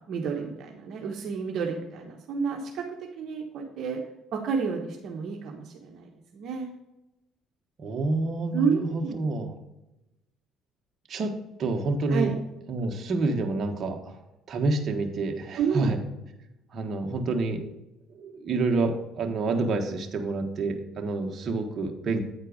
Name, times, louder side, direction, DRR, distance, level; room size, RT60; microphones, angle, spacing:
voice 1, 0.1-2.9 3.2-4.0 4.3-6.7 8.5-9.3 12.1-12.3 15.6-15.9, right 6 dB, 60° right, 1 dB, 1.2 m, -30 dB
voice 2, 7.8-9.6 11.1-12.3 12.7-14.2 14.5-16.0 16.7-17.7 18.1-22.2, right 3 dB, 45° right, 3 dB, 1.4 m, -28 dB
9.1 x 4.5 x 5.0 m, 0.92 s
cardioid pair, 95°, 0 cm